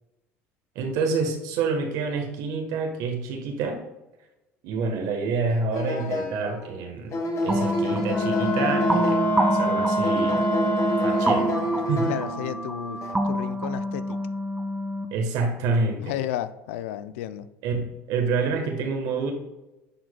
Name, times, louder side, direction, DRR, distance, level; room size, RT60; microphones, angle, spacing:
voice 1, 0.7-3.8 4.6-7.2 7.4-10.4 11.0-11.5 11.9-12.1 15.1-16.1 17.6-19.3, right 4 dB, 65° right, 4 dB, 1.3 m, -27 dB
sound 1, 5.7-6.7 7.1-9.6 10.0-12.6 13.0-13.1, left 1 dB, 50° left, 1.3 m, -28 dB
sound 2, 7.5-15.1, equal, 10° right, 0.8 m, -28 dB
Wind instrument woodwind instrument, 8.1-11.7, right 1 dB, 25° left, 1.0 m, -25 dB
voice 2, 12.1-14.2 16.0-17.5, left 12 dB, 80° left, 14 dB, 0.4 m, -33 dB
10.0 x 4.7 x 2.3 m, 1.0 s
hypercardioid pair, 80°, 7 cm